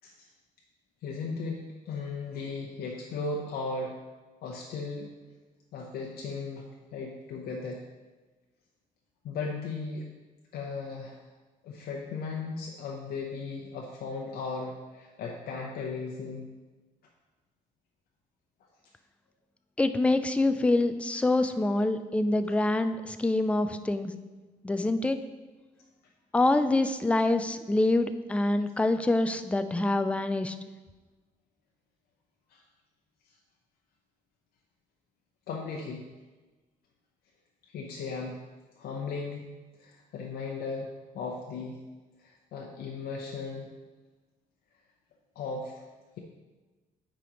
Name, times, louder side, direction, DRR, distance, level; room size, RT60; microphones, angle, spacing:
voice 1, 1.0-4.0 4.4-5.1 5.7-7.8 9.2-10.1 10.5-11.2 11.6-16.5 21.4-21.6 32.5-32.6 35.5-36.0 37.7-38.4 38.8-39.4 39.8-41.8 42.2-43.7 45.4-45.7, left 4 dB, 90° left, -1 dB, 0.7 m, -36 dB
voice 2, 19.8-24.1 24.6-25.2 26.3-30.5, left 2 dB, 10° left, 9 dB, 0.3 m, -26 dB
8.9 x 4.9 x 3.0 m, 1.2 s
cardioid pair, 115°, 15 cm